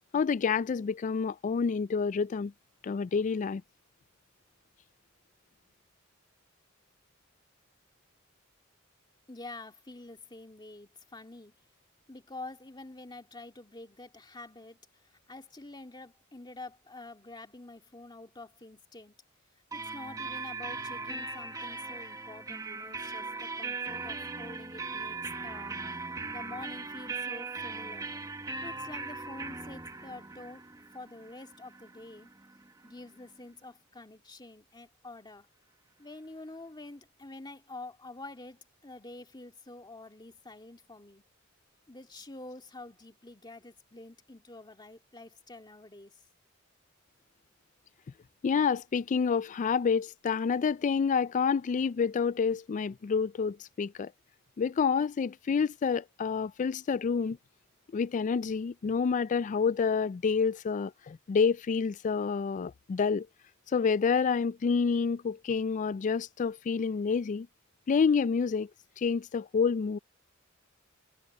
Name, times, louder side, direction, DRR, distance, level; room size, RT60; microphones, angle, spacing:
voice 1, 0.1-2.5 2.8-3.6 48.4-54.1 54.6-57.4 57.9-63.3 63.7-67.5 67.9-68.7 69.0-70.0, left 5 dB, 35° left, 0.3 m, -28 dB
voice 2, 9.3-11.6 12.1-19.2 19.7-28.1 28.6-30.6 30.9-32.3 32.8-35.5 36.0-41.2 41.9-46.2, left 2 dB, 20° left, 2.2 m, -47 dB
sound 1, 19.7-33.3, right 3 dB, 15° right, 1.4 m, -39 dB
head